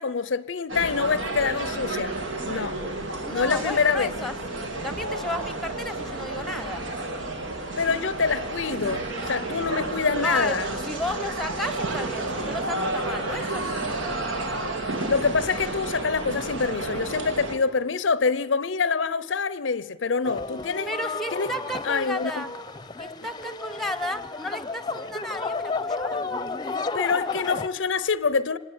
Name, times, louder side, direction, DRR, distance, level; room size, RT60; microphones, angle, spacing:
voice 1, 0.0-2.2 2.5-2.8 3.3-4.1 7.8-10.7 15.1-20.9 21.3-21.5 21.8-22.4 26.9-28.6, left 5 dB, 70° left, 0.6 m, -25 dB
sound 1, 0.7-17.6, right 2 dB, 75° right, 2.9 m, -31 dB
voice 2, 3.2-6.9 10.2-13.9 20.9-22.5 23.0-26.3, left 1 dB, ahead, 1.0 m, -33 dB
sound 2, 20.2-27.7, left 3 dB, 20° left, 0.8 m, -32 dB
25.5 x 19.0 x 9.4 m
head